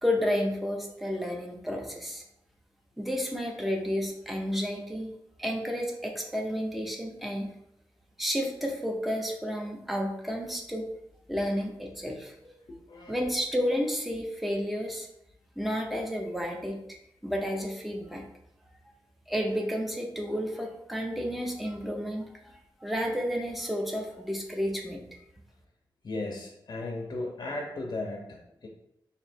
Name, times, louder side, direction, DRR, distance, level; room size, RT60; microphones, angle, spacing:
voice 1, 0.0-2.2 3.0-5.1 5.4-7.5 8.2-10.9 11.3-12.5 13.1-15.1 15.6-17.0 17.2-18.3 19.3-25.0, equal, ahead, 0 dB, 0.6 m, -31 dB
voice 2, 12.7-13.2 26.0-28.7, left 2 dB, 50° left, -1 dB, 0.6 m, -36 dB
3.1 x 2.7 x 4.3 m, 0.83 s
wide cardioid pair, 125°, 9 cm